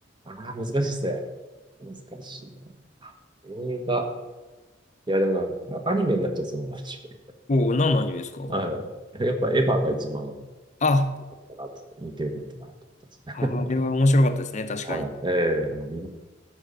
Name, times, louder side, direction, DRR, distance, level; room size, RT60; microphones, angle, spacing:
voice 1, 0.3-1.2 1.8-2.5 3.0-3.1 3.4-4.1 5.1-7.0 8.5-8.9 9.1-10.4 11.5-11.7 12.0-12.4 13.3-13.5 14.8-16.1, right 1 dB, 25° right, 5 dB, 1.2 m, -27 dB
voice 2, 7.5-8.6 10.8-11.2 13.3-15.1, left 2 dB, 40° left, 9 dB, 0.7 m, -23 dB
12.5 x 5.0 x 6.7 m, 1.2 s
head